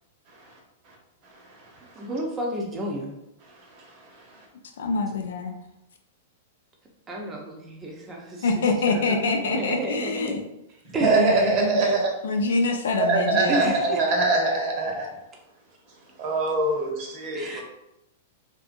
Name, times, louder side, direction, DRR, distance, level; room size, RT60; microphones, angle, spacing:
voice 1, 1.9-3.1 7.1-8.5 8.9-10.4 10.9-11.6 13.5-14.0 17.3-17.6, right 1 dB, 20° right, -1 dB, 0.6 m, -31 dB
voice 2, 4.8-5.6 8.4-10.4 12.2-13.7, left 3 dB, 80° left, 4 dB, 0.5 m, -25 dB
voice 3, 10.9-12.1 13.0-15.1 16.2-17.6, right 2 dB, 45° right, 0 dB, 0.8 m, -23 dB
2.7 x 2.5 x 2.5 m, 0.88 s
hypercardioid pair, 130°, 0 cm